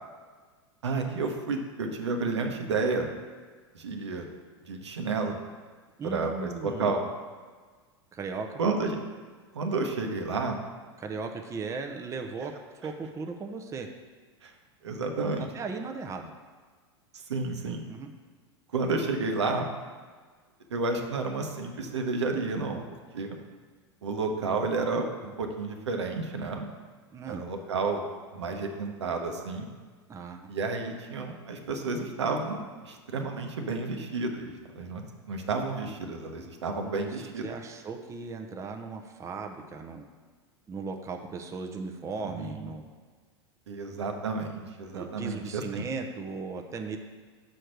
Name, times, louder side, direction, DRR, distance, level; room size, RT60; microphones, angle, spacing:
voice 1, 0.8-3.1 3.7-4.3 4.6-5.4 6.0-7.0 8.6-9.0 9.5-10.6 14.4-14.5 14.8-15.5 17.3-17.8 18.7-19.7 20.7-22.8 23.1-23.4 24.0-26.7 27.3-28.0 28.3-29.7 30.5-35.0 35.3-37.4 42.2-42.6 43.7-45.9, right 3 dB, 80° right, 3 dB, 1.0 m, -31 dB
voice 2, 6.0-7.0 8.1-8.6 11.0-12.5 12.8-13.9 15.4-16.3 17.8-18.1 27.1-27.5 30.1-30.5 37.0-37.1 37.4-40.0 40.7-42.9 44.9-47.0, right 4 dB, 20° right, 4 dB, 0.7 m, -37 dB
6.4 x 4.4 x 6.5 m, 1.5 s
hypercardioid pair, 90°, 14 cm